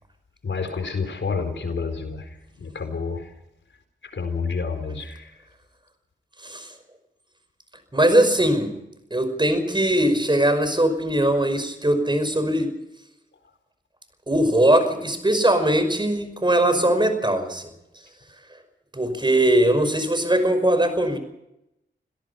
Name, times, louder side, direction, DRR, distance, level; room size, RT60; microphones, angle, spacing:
voice 1, 0.4-2.3 2.6-3.3 4.1-5.3, left 5 dB, 75° left, 7 dB, 4.4 m, -29 dB
voice 2, 7.9-8.8 9.1-12.7 14.3-17.7 18.9-21.2, right 1 dB, 25° right, 9 dB, 5.6 m, -20 dB
26.5 x 17.5 x 5.8 m, 0.86 s
cardioid pair, 45°, 20 cm